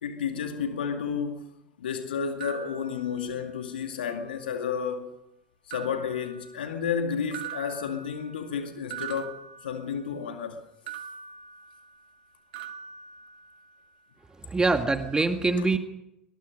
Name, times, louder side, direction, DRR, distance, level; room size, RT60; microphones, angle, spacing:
voice 1, 0.0-1.5 1.8-5.1 5.7-10.6, left 7 dB, 75° left, 2.3 m, -31 dB
sound 1, 2.4-3.7 4.1-4.8 5.7-7.0 7.3-10.3 10.9-12.2 12.5-13.9, right 8 dB, 65° right, 2.0 m, -43 dB
voice 2, 14.4-15.8, right 3 dB, 15° right, 1.9 m, -24 dB
23.0 x 21.5 x 5.4 m
figure-of-eight pair, 75°, 5 cm